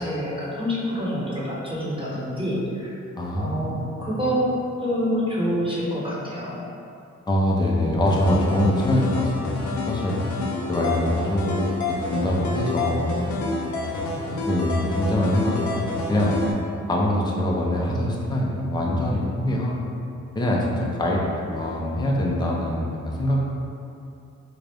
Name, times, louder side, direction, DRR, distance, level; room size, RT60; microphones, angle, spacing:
voice 1, 0.0-2.9 3.4-4.5 4.8-6.6, equal, 20° right, -7 dB, 0.9 m, -27 dB
voice 2, 3.2-4.1 7.3-10.2 10.7-13.9 14.3-16.3 16.9-19.9 20.3-23.4, left 1 dB, 15° left, -3 dB, 0.5 m, -24 dB
sound 1, 8.0-16.5, left 3 dB, 80° left, 0.6 m, -28 dB
4.0 x 2.4 x 3.4 m, 2.6 s
cardioid pair, 80°, 29 cm